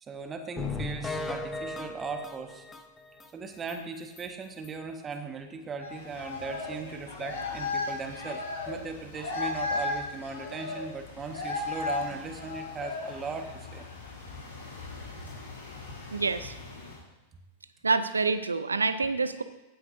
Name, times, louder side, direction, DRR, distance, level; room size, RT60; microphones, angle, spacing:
voice 1, 0.0-2.6 3.3-13.9, right 4 dB, 25° right, 5 dB, 1.4 m, -38 dB
sound 1, 0.6-3.3 3.7-3.8 4.2-4.3 4.6-4.7, left 3 dB, 20° left, 1.0 m, -36 dB
sound 2, 5.8-17.0, left 3 dB, 80° left, 3.3 m, -36 dB
voice 2, 16.1-16.5 17.8-19.4, right 4 dB, 85° right, 13 dB, 0.6 m, -27 dB
15.5 x 8.7 x 2.7 m, 1.0 s
figure-of-eight pair, 95°, 0 cm